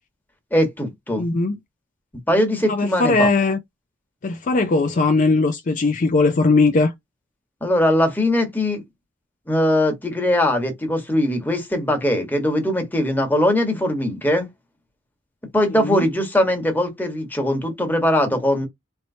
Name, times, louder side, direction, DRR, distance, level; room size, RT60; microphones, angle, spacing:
voice 1, 0.5-1.2 2.3-3.3 7.6-8.8 9.5-14.5 15.5-18.7, left 1 dB, 10° left, 1.2 m, -20 dB
voice 2, 1.2-1.6 2.7-3.6 4.2-6.9 15.7-16.0, left 3 dB, 40° left, 0.4 m, -19 dB
4.4 x 3.0 x 2.7 m
head